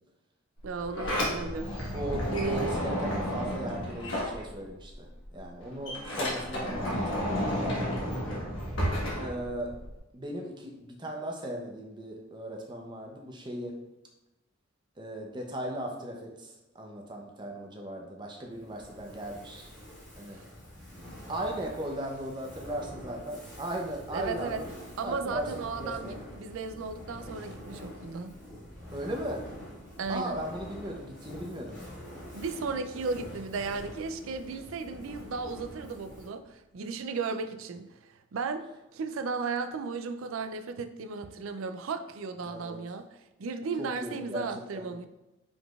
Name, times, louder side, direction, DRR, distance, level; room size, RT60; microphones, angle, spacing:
Sliding door, 0.6-4.9 5.2-10.0, equal, 70° left, 1.3 m, -32 dB
voice 1, 0.6-1.9 2.3-2.8 24.1-24.6 25.0-28.3 30.0-30.4 32.3-38.6 38.9-43.0 43.4-45.1, right 4 dB, 80° right, 9 dB, 0.4 m, -35 dB
voice 2, 1.9-5.1 5.3-8.1 9.2-9.7 10.1-13.8 15.0-19.7 20.2-20.4 21.3-24.8 25.0-26.2 28.9-29.4 30.1-31.8 42.4-42.8 43.8-44.5 44.7-44.9, right 1 dB, 20° right, 1 dB, 0.6 m, -37 dB
Fire, 18.5-36.5, left 1 dB, 5° left, 1.5 m, -46 dB
5.1 x 3.9 x 2.4 m, 0.95 s
head